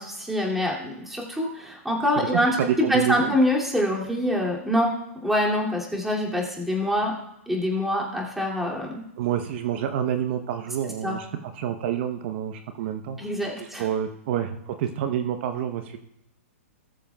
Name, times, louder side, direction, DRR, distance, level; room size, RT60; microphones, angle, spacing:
voice 1, 0.0-2.6 2.9-7.1 7.5-9.0 11.0-11.2 13.2-13.9, left 1 dB, 5° right, -3 dB, 2.4 m, -25 dB
voice 2, 2.6-3.3 9.2-13.2 13.6-16.0, right 10 dB, 50° right, 7 dB, 0.8 m, -28 dB
19.0 x 7.2 x 2.3 m, 0.83 s
hypercardioid pair, 130°, 8 cm